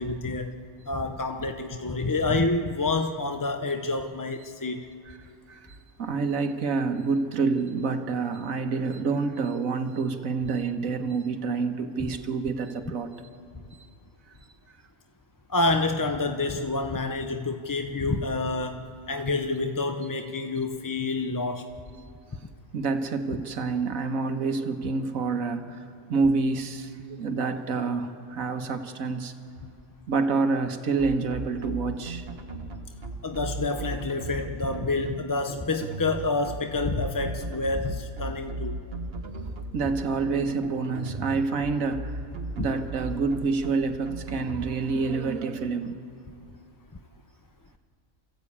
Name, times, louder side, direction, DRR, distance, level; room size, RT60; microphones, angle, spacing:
voice 1, 0.0-4.9 15.5-21.7 33.2-38.8 42.6-42.7, left 3 dB, 20° left, 6 dB, 0.5 m, -28 dB
voice 2, 5.5-13.1 13.8-13.9 22.7-25.8 26.1-29.3 30.1-32.3 39.7-42.2 42.6-45.9, right 4 dB, 75° right, 6 dB, 1.7 m, -28 dB
sound 1, 31.0-44.7, right 2 dB, 45° right, 1.5 m, -36 dB
28.5 x 14.5 x 8.6 m, 2.5 s
omnidirectional pair, 1.4 m